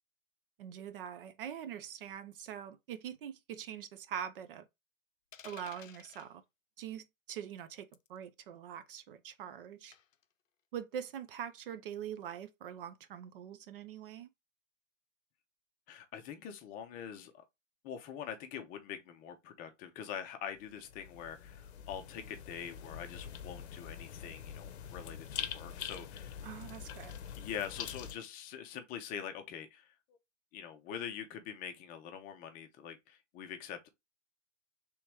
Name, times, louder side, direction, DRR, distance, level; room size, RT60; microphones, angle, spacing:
voice 1, 0.6-4.7 5.4-6.4 6.8-9.9 10.7-14.3 26.4-27.1, right 9 dB, 45° right, 0.5 m, -43 dB
sound 1, 5.3-6.3 7.9-8.2 9.9-10.2, left 8 dB, 90° left, 0.6 m, -53 dB
voice 2, 15.9-17.4 17.8-26.4 27.4-29.9 30.5-33.9, left 8 dB, 25° left, 0.6 m, -44 dB
sound 2, 20.6-28.1, left 8 dB, 60° left, 0.8 m, -45 dB
3.5 x 2.9 x 4.7 m
hypercardioid pair, 120°, 38 cm